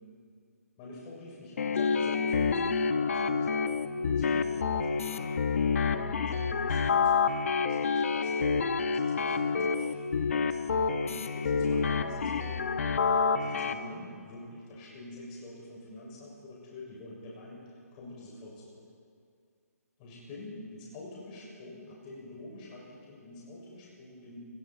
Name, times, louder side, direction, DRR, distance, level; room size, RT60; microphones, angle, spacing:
voice 1, 0.8-12.6 13.0-18.8 20.0-24.4, left 2 dB, 30° left, -4 dB, 6.6 m, -47 dB
sound 1, 1.6-13.7, left 5 dB, 55° left, 1.1 m, -28 dB
29.0 x 20.5 x 4.5 m, 2.3 s
figure-of-eight pair, 140°, 9 cm